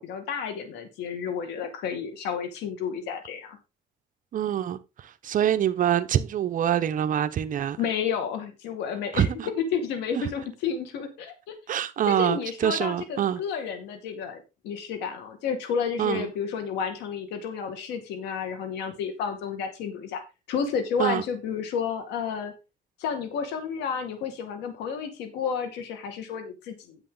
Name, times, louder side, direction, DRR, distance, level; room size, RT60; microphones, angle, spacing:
voice 1, 0.0-3.6 7.8-9.3 9.6-11.5 12.1-14.4 14.6-20.2 20.5-22.5 23.0-27.0, left 6 dB, 90° left, 2.2 m, -31 dB
voice 2, 4.3-7.8 9.1-9.5 10.2-10.3 11.7-13.4 16.0-16.3 21.0-21.2, right 10 dB, 50° right, 0.9 m, -25 dB
10.0 x 7.8 x 3.9 m
cardioid pair, 110°, 17 cm